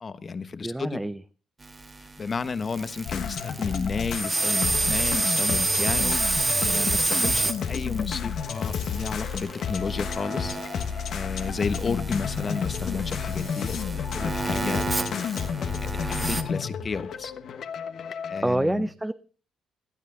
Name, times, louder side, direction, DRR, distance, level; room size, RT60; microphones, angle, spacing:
voice 1, 0.0-1.0 2.2-10.6 11.1-17.3 18.3-18.9, left 5 dB, 40° left, 1.1 m, -32 dB
voice 2, 0.6-1.2 18.4-19.1, right 1 dB, 10° right, 0.5 m, -26 dB
sound 1, 1.6-16.4, right 3 dB, 25° right, 1.5 m, -30 dB
sound 2, 3.0-18.4, left 7 dB, 65° left, 1.2 m, -31 dB
17.5 x 12.0 x 3.8 m
cardioid pair, 90°, 0 cm